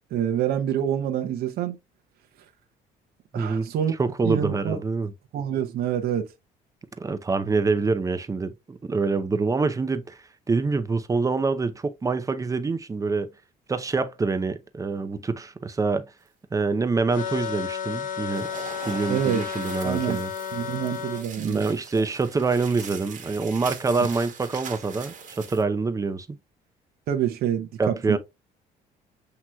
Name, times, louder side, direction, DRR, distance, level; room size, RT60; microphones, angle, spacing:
voice 1, 0.1-1.8 3.3-3.9 4.2-4.8 5.3-6.3 19.1-19.4 19.8-20.2 20.5-21.6 22.0-22.1 24.0-24.1 27.1-28.2, right 9 dB, 65° right, 0.7 m, -26 dB
voice 2, 3.3-3.7 4.0-5.1 7.0-10.2 10.5-13.3 13.7-16.1 16.5-18.5 18.8-20.3 21.4-26.4 27.8-28.2, right 4 dB, 20° right, 0.6 m, -26 dB
sound 1, 17.1-21.3, left 7 dB, 50° left, 0.8 m, -32 dB
sound 2, 18.3-25.6, right 6 dB, 50° right, 1.3 m, -41 dB
7.5 x 2.9 x 2.2 m
cardioid pair, 110°, 17 cm